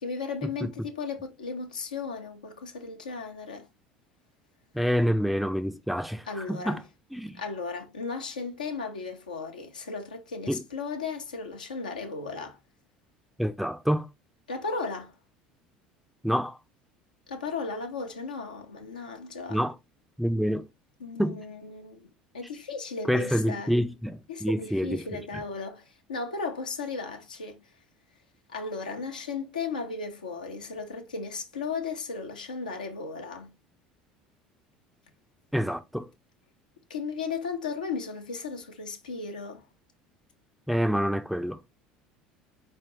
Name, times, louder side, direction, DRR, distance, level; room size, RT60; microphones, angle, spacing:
voice 1, 0.0-3.7 6.3-6.8 7.3-12.6 14.5-15.1 17.3-19.6 21.0-22.1 22.3-23.7 24.3-25.8 26.1-27.6 28.5-33.5 36.9-39.7, left 4 dB, 85° left, 0.8 m, -35 dB
voice 2, 4.7-6.8 7.1-7.4 10.5-10.6 13.4-14.1 16.2-16.6 19.5-19.8 20.2-20.7 21.2-21.4 23.1-25.1 25.3-25.4 35.5-36.1 40.7-41.6, equal, ahead, 0.5 m, -27 dB
4.5 x 3.2 x 3.0 m
hypercardioid pair, 70°, 4 cm